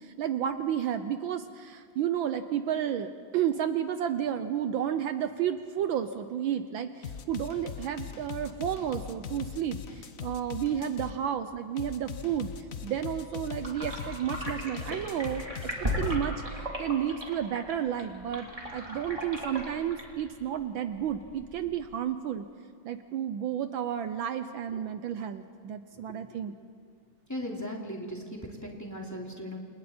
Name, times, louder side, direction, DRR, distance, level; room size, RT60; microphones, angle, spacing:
voice 1, 0.0-12.5 12.8-22.5 22.8-26.5, right 9 dB, 70° right, 9 dB, 1.4 m, -32 dB
sound 1, 7.0-11.2 11.8-16.2, left 7 dB, 50° left, 1.1 m, -40 dB
sound 2, 13.6-21.9, equal, 15° right, 3.4 m, -37 dB
voice 2, 27.3-29.6, equal, 10° left, -1 dB, 2.7 m, -38 dB
29.0 x 28.0 x 4.4 m, 2.1 s
omnidirectional pair, 2.4 m